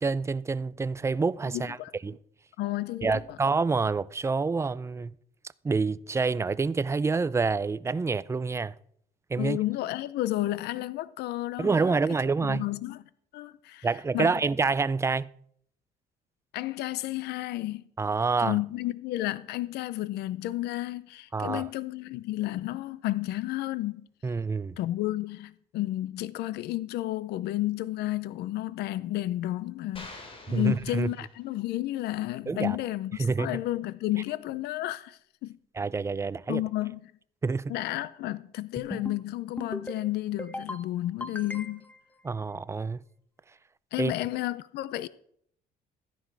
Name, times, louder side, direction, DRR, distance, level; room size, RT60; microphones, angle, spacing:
voice 1, 0.0-1.8 2.0-2.2 3.0-5.1 5.6-8.7 9.3-9.6 11.6-12.6 13.8-15.3 18.0-18.6 21.3-21.7 24.2-24.8 30.5-31.1 32.5-32.8 33.2-33.5 35.8-36.6 37.4-37.7 42.2-43.0 44.0-44.1, right 4 dB, 15° right, 0.4 m, -27 dB
voice 2, 1.5-1.9 2.6-3.4 9.4-12.0 12.5-13.0 13.3-13.9 14.1-14.3 16.5-17.8 18.4-24.0 24.8-35.6 36.5-37.1 37.7-41.9 43.9-45.1, left 15 dB, 75° left, 0.6 m, -32 dB
sound 1, 29.9-31.7, left 2 dB, 30° left, 2.8 m, -47 dB
sound 2, 38.8-39.2 39.6-40.0 40.4-40.8 41.2-42.0, left 2 dB, 10° left, 0.9 m, -37 dB
14.0 x 10.5 x 4.7 m
cardioid pair, 110°, 17 cm